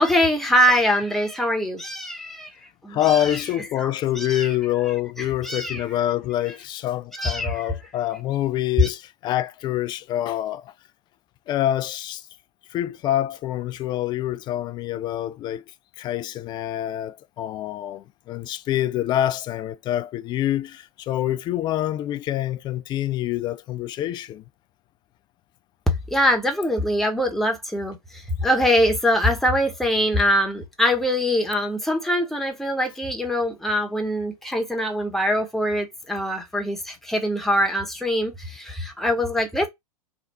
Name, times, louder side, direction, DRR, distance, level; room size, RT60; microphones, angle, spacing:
voice 1, 0.0-2.5 2.8-3.4 3.8-4.5 5.2-5.8 7.1-7.7 8.8-8.9 26.1-39.7, equal, ahead, 1.0 m, -23 dB
voice 2, 2.9-10.6 11.5-12.2 12.7-15.6 16.0-24.4, left 13 dB, 25° left, 0.3 m, -26 dB
3.4 x 2.3 x 4.1 m
hypercardioid pair, 105°, 18 cm